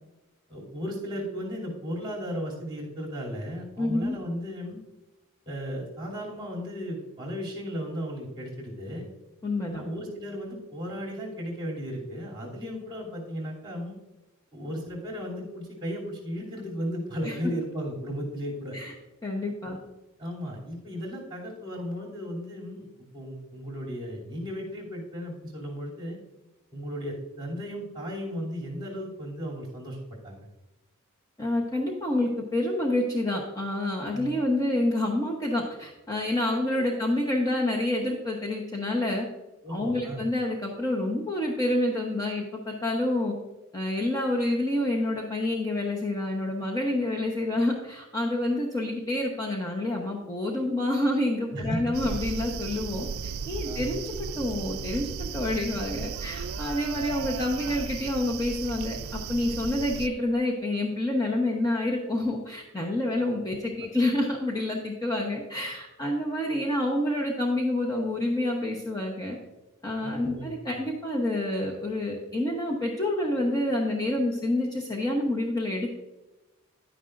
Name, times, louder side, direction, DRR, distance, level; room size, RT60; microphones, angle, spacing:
voice 1, 0.5-4.8 5.4-9.1 9.7-14.0 14.5-18.8 20.2-22.9 23.1-26.2 26.7-30.0 30.2-30.5 34.1-34.3 39.6-40.2 51.5-52.0 53.6-53.9 63.5-63.9 70.0-70.8, equal, 20° right, -3 dB, 3.0 m, -35 dB
voice 2, 3.8-4.2 9.4-9.8 17.2-17.3 18.7-18.9 19.2-19.8 31.4-39.3 39.7-43.4 43.7-69.4 69.8-75.9, left 1 dB, 15° left, -2 dB, 1.0 m, -28 dB
sound 1, 51.9-60.1, right 6 dB, 65° right, 0.4 m, -35 dB
11.0 x 9.8 x 2.6 m, 1.0 s
head